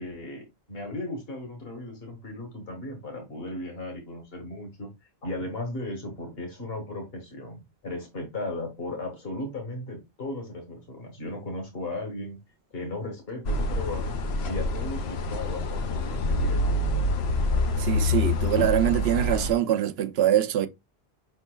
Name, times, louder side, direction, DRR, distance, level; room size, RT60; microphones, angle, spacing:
voice 1, 0.0-4.9 5.2-12.4 12.7-14.2 14.5-16.8, left 2 dB, 70° left, 1.8 m, -36 dB
sound 1, 13.5-19.5, left 2 dB, 85° left, 1.0 m, -26 dB
voice 2, 17.8-20.7, right 11 dB, 80° right, 0.8 m, -24 dB
5.3 x 4.3 x 2.2 m
omnidirectional pair, 1.0 m